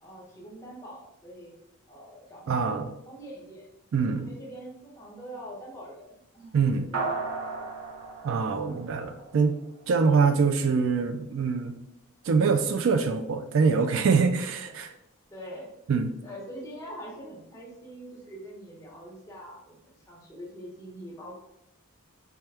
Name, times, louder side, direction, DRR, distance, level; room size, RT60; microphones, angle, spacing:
voice 1, 0.0-1.5 1.9-3.7 4.0-7.1 7.6-7.7 9.2-9.3 14.6-14.8 15.3-15.7 16.2-21.4, equal, 15° left, -4 dB, 0.9 m, -44 dB
voice 2, 2.5-2.8 3.9-4.3 6.5-6.9 8.2-9.6 9.9-11.8 12.2-14.9 15.9-16.1, right 5 dB, 65° right, 6 dB, 0.3 m, -24 dB
sound 1, 6.9-9.6, right 4 dB, 90° right, 1.0 m, -35 dB
4.4 x 2.3 x 3.3 m, 0.82 s
head